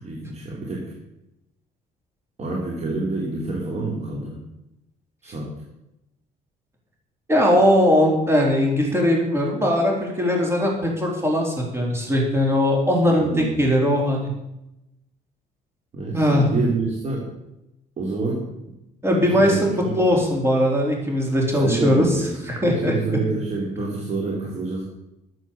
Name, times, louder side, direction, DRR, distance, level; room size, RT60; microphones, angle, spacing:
voice 1, 0.0-0.9 2.4-4.4 5.2-5.5 13.2-13.6 15.9-17.3 18.0-18.5 19.3-20.2 21.6-24.8, right 3 dB, 40° right, -2 dB, 3.1 m, -27 dB
voice 2, 7.3-14.3 16.1-16.5 19.0-22.9, equal, 15° right, 0 dB, 3.7 m, -20 dB
12.0 x 8.1 x 7.0 m, 0.89 s
cardioid pair, 110°, 17 cm